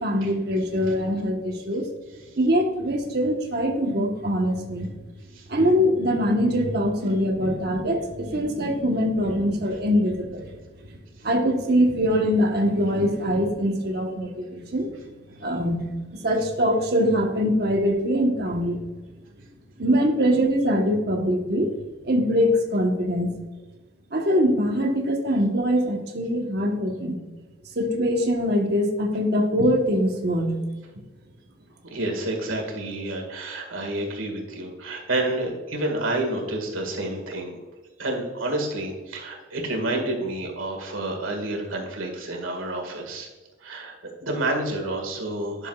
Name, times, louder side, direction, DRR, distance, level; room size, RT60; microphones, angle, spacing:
voice 1, 0.0-1.8 2.4-4.9 5.5-10.5 11.2-14.9 15.4-15.8 16.2-18.8 19.8-21.7 22.0-23.3 24.1-27.2 27.8-30.6, equal, 50° right, 2 dB, 1.1 m, -23 dB
voice 2, 31.9-37.6 38.0-43.3 43.6-43.9 44.2-45.7, right 1 dB, 85° right, 1 dB, 1.9 m, -29 dB
10.5 x 6.8 x 2.4 m, 1.3 s
head